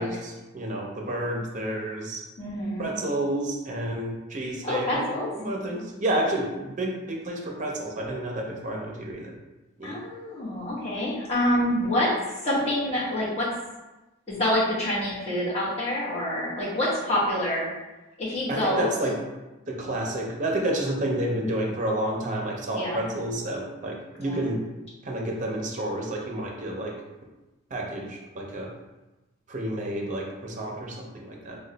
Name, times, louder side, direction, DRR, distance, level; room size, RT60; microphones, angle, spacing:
voice 1, 0.0-2.2 2.8-5.1 5.3-9.3 9.8-10.0 18.5-19.1 19.7-24.6 25.0-26.9 27.7-28.7 29.5-31.6, right 1 dB, 35° right, 0 dB, 0.5 m, -30 dB
voice 2, 2.4-2.9 4.6-5.3 9.8-12.1 12.4-13.5 14.3-17.7 18.2-18.9 22.7-23.0 24.2-24.4, left 1 dB, 30° left, -8 dB, 1.0 m, -26 dB
3.0 x 2.1 x 3.8 m, 1.1 s
head